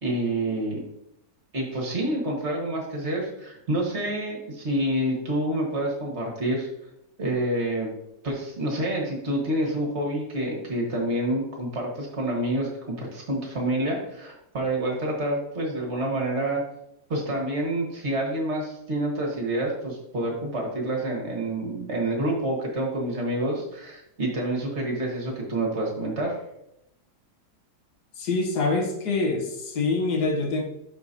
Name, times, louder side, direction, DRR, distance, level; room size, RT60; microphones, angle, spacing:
voice 1, 0.0-0.8 1.5-6.7 7.2-7.9 8.2-16.6 17.1-26.4, right 1 dB, 45° right, -1 dB, 1.7 m, -28 dB
voice 2, 28.2-30.6, left 3 dB, 80° left, 2 dB, 1.6 m, -25 dB
11.5 x 4.4 x 2.7 m, 0.83 s
omnidirectional pair, 1.7 m